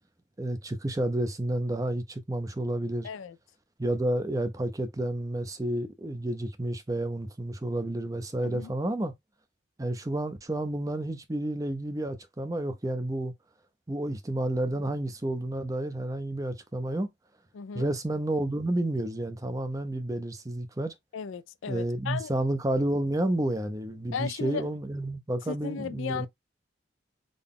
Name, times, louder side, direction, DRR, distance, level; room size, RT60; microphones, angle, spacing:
voice 1, 0.4-3.1 3.8-9.1 9.8-13.3 13.9-17.1 17.7-20.9 21.7-26.3, right 1 dB, 15° right, 0.5 m, -30 dB
voice 2, 3.0-3.4 8.4-8.7 17.5-17.9 21.1-22.3 24.1-24.7 25.5-26.3, left 6 dB, 85° left, 0.4 m, -35 dB
3.8 x 2.2 x 3.5 m
head